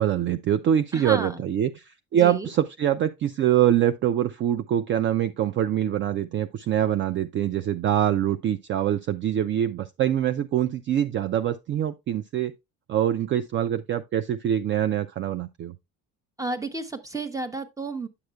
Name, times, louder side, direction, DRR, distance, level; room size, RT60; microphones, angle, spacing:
voice 1, 0.0-12.5 12.9-15.7, right 11 dB, 40° right, 0.4 m, -24 dB
voice 2, 0.9-1.4 2.1-2.5 16.4-18.1, right 2 dB, 10° right, 0.8 m, -32 dB
9.6 x 6.5 x 2.2 m
cardioid pair, 140°, 31 cm